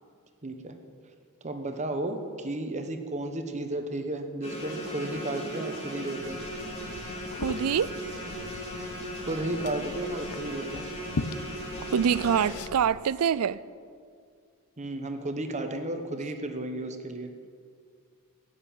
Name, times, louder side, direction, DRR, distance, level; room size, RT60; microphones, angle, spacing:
voice 1, 0.4-0.8 1.4-6.4 9.2-10.9 14.8-17.3, right 1 dB, 30° right, 1.1 m, -33 dB
sound 1, 4.4-12.5, equal, 30° left, 3.0 m, -37 dB
Liquid, 6.2-13.0, left 3 dB, 90° left, 0.7 m, -40 dB
voice 2, 7.3-8.0 11.9-13.6, right 7 dB, 80° right, 0.4 m, -25 dB
16.0 x 6.8 x 8.9 m
head